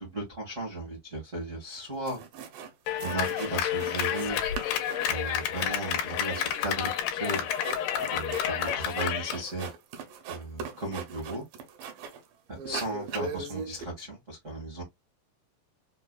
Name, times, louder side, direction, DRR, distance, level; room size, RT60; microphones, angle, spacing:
voice 1, 0.0-2.2 3.0-4.4 5.1-7.5 8.1-9.7 10.3-11.4 12.5-14.8, right 1 dB, 55° right, 0.8 m, -35 dB
sound 1, 1.8-1.9 2.1-2.7 3.0-4.3 4.5-12.3 12.6-13.8, right 5 dB, 80° right, 2.4 m, -40 dB
Clapping, 2.9-9.4, left 10 dB, 80° left, 2.2 m, -30 dB
5.4 x 2.3 x 2.2 m
omnidirectional pair, 4.0 m